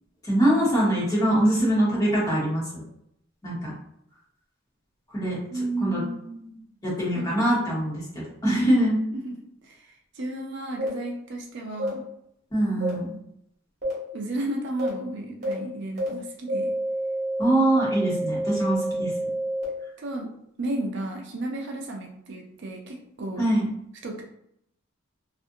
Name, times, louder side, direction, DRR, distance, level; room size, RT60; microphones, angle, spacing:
voice 1, 0.2-2.6 3.4-3.7 5.1-5.4 5.8-6.0 6.8-8.0 8.4-9.0 12.5-13.1 17.4-19.1 23.4-23.6, right 1 dB, 20° left, -8 dB, 1.1 m, -23 dB
voice 2, 5.5-6.6 7.1-7.3 9.1-9.4 9.6-9.9 10.1-12.0 14.1-16.7 20.0-20.3 20.6-23.5 24.0-24.2, right 2 dB, 55° right, 1 dB, 0.4 m, -33 dB
sound 1, 10.8-10.9 11.8-11.9 12.8-12.9 13.8-13.9 14.8-14.9 15.4-15.5 16.0-16.1 16.5-19.6, right 1 dB, 35° right, 1.1 m, -28 dB
2.5 x 2.5 x 2.6 m, 0.74 s
head